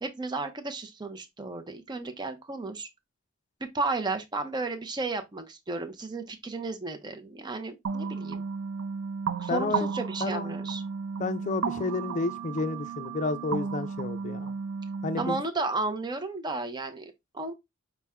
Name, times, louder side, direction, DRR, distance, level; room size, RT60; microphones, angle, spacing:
voice 1, 0.0-2.9 3.7-8.4 9.4-10.8 15.2-17.5, right 3 dB, 20° right, 0.6 m, -33 dB
sound 1, 7.8-15.4, right 5 dB, 80° right, 0.5 m, -33 dB
voice 2, 9.5-9.9 10.2-10.6 11.2-14.5 15.0-15.4, left 3 dB, 35° left, 0.5 m, -31 dB
5.5 x 2.1 x 3.5 m
head